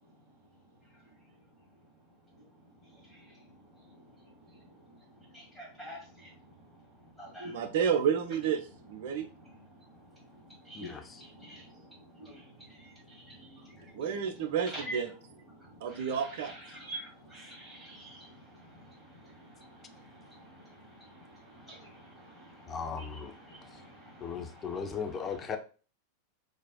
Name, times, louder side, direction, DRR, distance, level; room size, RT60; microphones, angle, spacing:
voice 1, 2.8-7.6 9.0-14.0 14.7-15.0 15.5-25.5, right 1 dB, ahead, 1.6 m, -49 dB
voice 2, 7.4-8.6 8.9-9.3 13.9-15.1 15.8-16.5, right 7 dB, 50° right, 0.5 m, -30 dB
voice 3, 10.7-11.2 22.7-23.3 24.2-25.6, left 6 dB, 20° left, 0.4 m, -37 dB
4.0 x 2.5 x 2.2 m
figure-of-eight pair, 90°, 0 cm